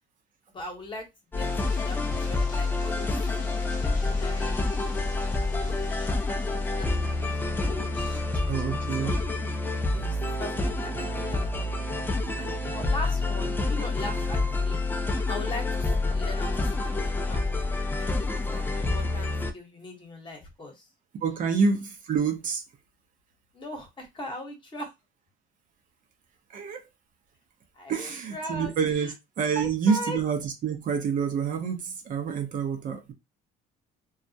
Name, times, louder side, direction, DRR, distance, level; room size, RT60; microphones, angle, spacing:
voice 1, 0.5-1.1 1.3-1.5 1.8-3.2 3.8-4.8 5.2-9.1 9.9-14.8 15.2-20.9 23.5-24.9 27.7-29.1 29.5-30.2, left 1 dB, 30° left, 1.0 m, -40 dB
sound 1, 1.3-19.5, left 2 dB, 10° left, 0.4 m, -28 dB
sound 2, 1.4-7.7, left 4 dB, 50° left, 0.7 m, -46 dB
voice 2, 8.5-9.2 21.2-22.6 26.5-26.8 27.9-33.1, right 6 dB, 50° right, 0.6 m, -27 dB
2.2 x 2.0 x 2.7 m
cardioid pair, 110°, 17 cm